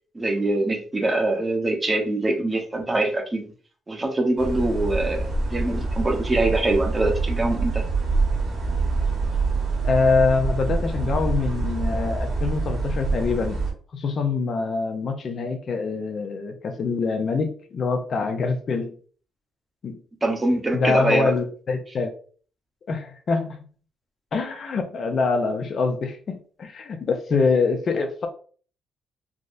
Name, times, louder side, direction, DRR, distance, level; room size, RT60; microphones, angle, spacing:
voice 1, 0.1-3.5 3.9-7.8 20.2-21.4, right 2 dB, 20° right, 0.7 m, -24 dB
sound 1, 4.4-13.7, right 3 dB, 55° right, 1.0 m, -25 dB
voice 2, 9.8-13.6 13.9-18.9 19.8-20.0 20.7-22.1 22.9-23.6 24.3-28.3, left 4 dB, 55° left, 0.5 m, -24 dB
3.5 x 2.1 x 2.5 m
cardioid pair, 90°, 0 cm